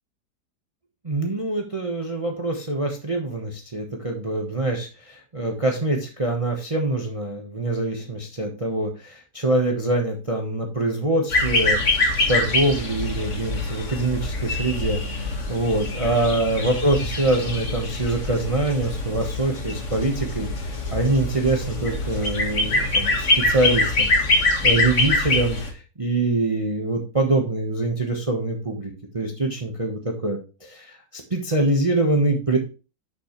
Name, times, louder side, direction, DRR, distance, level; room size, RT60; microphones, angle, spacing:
voice 1, 1.0-32.6, right 2 dB, 20° right, 2 dB, 1.1 m, -24 dB
sound 1, 11.3-25.7, left 2 dB, 45° left, 2.0 m, -24 dB
11.0 x 6.3 x 3.1 m, 0.32 s
omnidirectional pair, 1.8 m